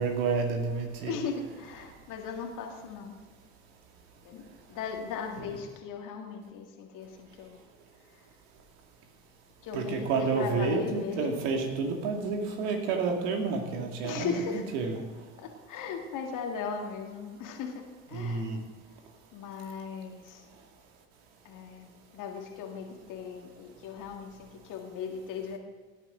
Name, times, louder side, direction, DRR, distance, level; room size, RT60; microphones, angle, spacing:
voice 1, 0.0-1.2 5.4-5.5 9.7-14.4 14.7-15.0 18.1-18.6, right 4 dB, 65° right, 2 dB, 2.5 m, -30 dB
voice 2, 1.0-3.2 4.2-4.4 4.7-7.6 8.1-8.3 9.6-11.4 14.0-14.7 15.4-17.8 18.1-18.5 19.3-20.4 21.4-25.6, left 6 dB, 50° left, 3 dB, 2.2 m, -37 dB
17.5 x 10.5 x 3.9 m, 1.5 s
figure-of-eight pair, 70°, 41 cm